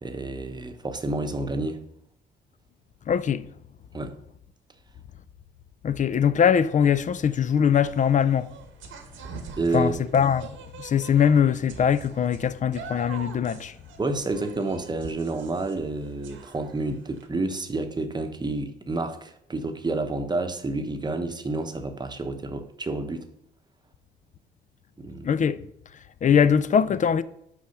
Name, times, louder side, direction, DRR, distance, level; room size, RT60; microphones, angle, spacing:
voice 1, 0.0-1.8 3.9-4.1 9.6-10.0 14.0-23.3 25.0-25.3 26.3-26.4, right 2 dB, 20° right, 0.9 m, -29 dB
voice 2, 3.1-3.5 5.8-8.5 9.7-10.5 10.8-13.7 25.2-25.6 26.2-27.2, left 8 dB, 40° left, 0.4 m, -21 dB
sound 1, 7.1-17.3, right 5 dB, 80° right, 1.1 m, -44 dB
6.2 x 4.9 x 5.7 m
cardioid pair, 90°, 20 cm